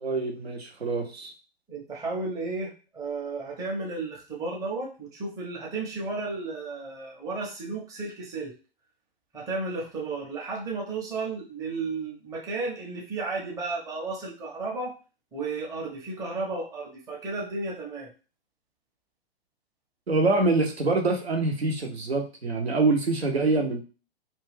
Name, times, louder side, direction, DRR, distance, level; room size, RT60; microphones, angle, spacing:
voice 1, 0.0-1.3 20.1-23.8, right 3 dB, 85° right, 3 dB, 0.8 m, -25 dB
voice 2, 1.7-8.5 9.3-15.0 15.3-18.1, right 3 dB, 10° right, -3 dB, 0.6 m, -33 dB
2.5 x 2.2 x 3.3 m, 0.34 s
figure-of-eight pair, 115°, 31 cm